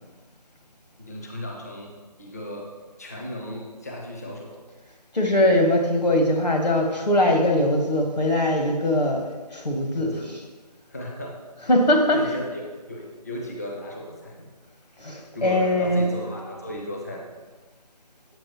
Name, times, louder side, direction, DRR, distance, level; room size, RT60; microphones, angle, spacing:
voice 1, 1.0-1.9 2.2-2.7 3.0-4.6 9.9-10.3 10.9-11.4 12.1-12.6 12.9-14.5 15.3-17.3, left 1 dB, 25° left, -1 dB, 0.5 m, -35 dB
voice 2, 5.1-10.4 11.6-12.4 15.0-16.2, left 1 dB, 75° left, 2 dB, 1.1 m, -21 dB
7.5 x 4.4 x 3.0 m, 1.4 s
figure-of-eight pair, 155°, 21 cm